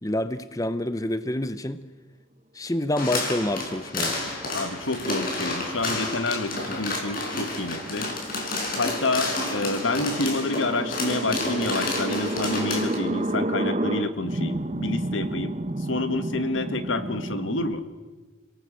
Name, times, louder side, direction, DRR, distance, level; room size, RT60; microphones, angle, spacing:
voice 1, 0.0-1.8 2.5-4.2, left 1 dB, 15° left, 12 dB, 0.7 m, -27 dB
sound 1, 3.0-13.0, left 2 dB, 45° left, 5.8 m, -30 dB
voice 2, 4.5-8.1 8.8-17.8, left 2 dB, 75° left, 10 dB, 1.9 m, -28 dB
sound 2, 5.7-17.7, right 1 dB, 35° right, 0.8 m, -32 dB
30.0 x 18.0 x 7.6 m, 1.3 s
head